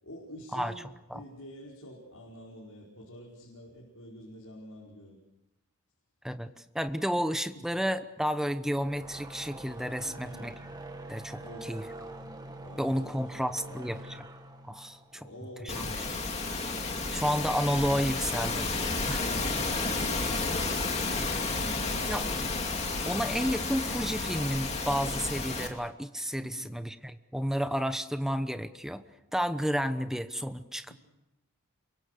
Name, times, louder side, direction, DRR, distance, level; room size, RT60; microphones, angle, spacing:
voice 1, 0.0-5.2 7.5-7.8 10.0-10.6 11.4-11.8 12.6-14.0 15.1-16.1 16.9-17.3 19.2-22.5 26.4-26.7, equal, 75° left, -3 dB, 5.0 m, -48 dB
voice 2, 6.2-10.5 11.1-11.8 12.8-14.2 14.7-15.3 15.6-15.8 17.1-18.7 19.1-19.2 22.0-22.3 23.1-29.0 29.3-30.9, equal, ahead, 10 dB, 0.9 m, -31 dB
sound 1, 8.6-16.0, right 2 dB, 15° right, 1.8 m, -45 dB
sound 2, 15.7-25.7, left 3 dB, 30° left, 2.8 m, -31 dB
28.0 x 23.5 x 6.7 m, 0.98 s
head